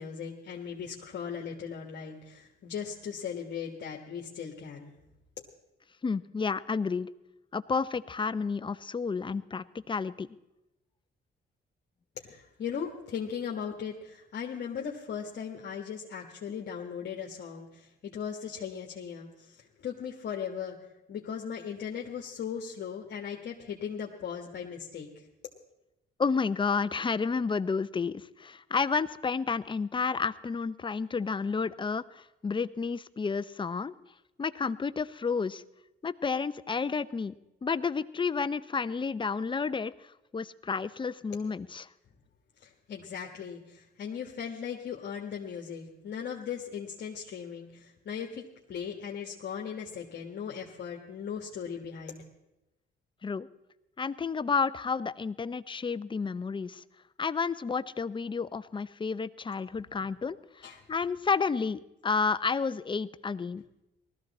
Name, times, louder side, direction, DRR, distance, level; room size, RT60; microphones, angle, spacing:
voice 1, 0.0-4.9 5.4-5.5 12.1-20.8 21.1-25.3 42.6-52.2 60.0-60.1 60.6-60.8, left 7 dB, 60° left, -1 dB, 1.6 m, -38 dB
voice 2, 6.0-7.1 7.5-10.3 26.2-33.9 34.4-35.6 36.0-37.3 37.6-39.9 40.3-41.9 53.2-53.5 54.0-56.8 57.2-63.6, left 5 dB, 25° left, 14 dB, 0.6 m, -31 dB
18.5 x 14.0 x 4.2 m, 0.95 s
cardioid pair, 90°, 20 cm